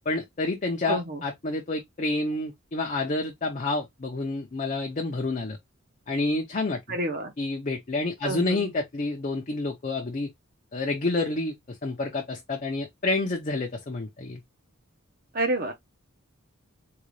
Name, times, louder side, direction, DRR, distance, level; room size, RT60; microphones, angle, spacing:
voice 1, 0.1-5.6 6.1-7.0 7.4-10.3 10.7-14.4, left 2 dB, 35° left, 0.5 m, -29 dB
voice 2, 0.9-1.2 6.9-7.3 8.2-8.7 15.3-15.7, right 2 dB, 40° right, 0.7 m, -29 dB
3.8 x 2.3 x 3.1 m
head